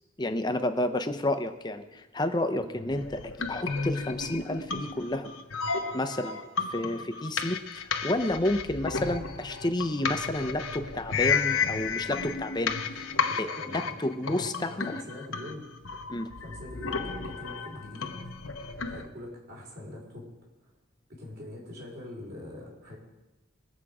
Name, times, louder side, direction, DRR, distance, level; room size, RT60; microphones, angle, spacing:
voice 1, 0.2-5.3 5.9-6.4 6.7-13.1 13.4-15.0 16.1-16.3, left 1 dB, 20° left, 8 dB, 0.7 m, -30 dB
sound 1, 2.9-19.1, left 5 dB, 75° left, 1.0 m, -33 dB
voice 2, 13.2-13.9 14.7-15.7 16.4-18.1 18.9-20.3 21.1-23.0, left 1 dB, 50° right, -1 dB, 4.1 m, -43 dB
22.0 x 7.4 x 4.9 m, 1.1 s
head